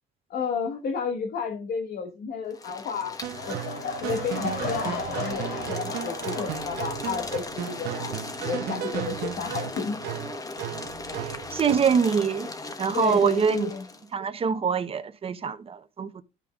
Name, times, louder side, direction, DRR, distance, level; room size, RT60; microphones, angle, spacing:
voice 1, 0.3-3.6 4.0-10.0 12.9-13.9, left 6 dB, 60° left, 1.3 m, -32 dB
sound 1, 2.5-14.1, left 3 dB, 20° left, 1.0 m, -38 dB
sound 2, 3.2-11.9, right 12 dB, 75° right, 0.7 m, -35 dB
sound 3, 3.3-8.3 8.6-9.0 9.5-9.6, left 5 dB, 80° left, 3.2 m, -36 dB
voice 2, 11.5-12.5 12.8-13.7 14.1-16.2, right 6 dB, 35° right, 0.8 m, -24 dB
13.0 x 5.2 x 2.3 m
cardioid pair, 110°, 17 cm